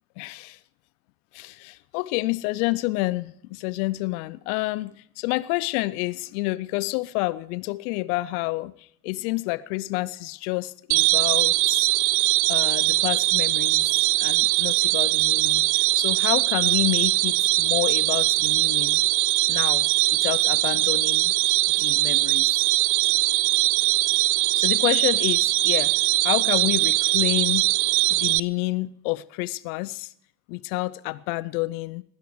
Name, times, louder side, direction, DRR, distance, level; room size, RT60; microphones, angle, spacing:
voice 1, 0.2-0.6 1.3-11.8 12.5-19.0 19.5-21.3 21.8-22.7 24.5-25.9 26.2-27.7 28.1-30.1 30.5-32.0, left 21 dB, 75° left, 0.6 m, -29 dB
sound 1, 10.9-28.4, right 23 dB, 60° right, 0.5 m, -21 dB
19.0 x 12.5 x 4.7 m
hypercardioid pair, 50°, 45 cm